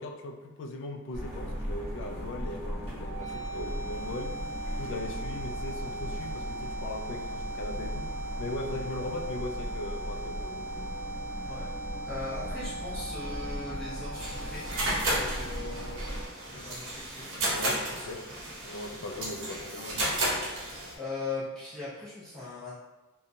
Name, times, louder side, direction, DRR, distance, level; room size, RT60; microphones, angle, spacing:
voice 1, 0.0-10.9 17.5-18.3 18.6-20.1, left 2 dB, 55° left, 4 dB, 0.4 m, -39 dB
sound 1, 1.1-16.3, equal, 30° right, 1.0 m, -38 dB
sound 2, 3.0-17.0, right 1 dB, 85° right, 0.5 m, -40 dB
voice 2, 12.1-14.7 15.0-16.1 16.5-17.3 17.9-18.2 21.0-22.8, left 3 dB, 5° left, -11 dB, 0.5 m, -39 dB
sound 3, 14.1-21.0, right 1 dB, 60° right, 0.8 m, -33 dB
2.9 x 2.2 x 2.5 m, 1.1 s
head